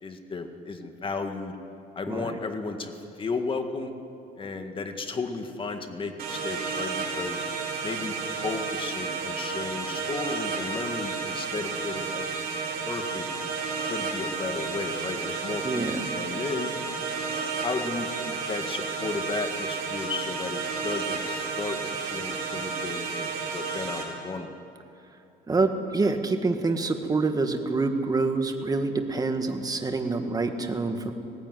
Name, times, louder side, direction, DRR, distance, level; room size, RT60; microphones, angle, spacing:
voice 1, 0.0-1.5 1.9-3.9 4.4-7.4 7.8-13.2 13.8-16.7 17.6-24.5, left 4 dB, 30° left, 6 dB, 1.8 m, -34 dB
voice 2, 2.1-2.4 15.6-16.0 25.5-31.1, right 3 dB, 20° right, 5 dB, 1.8 m, -26 dB
sound 1, 6.2-24.0, right 5 dB, 60° right, 4.5 m, -32 dB
18.5 x 16.0 x 9.3 m, 2.7 s
cardioid pair, 110°, 17 cm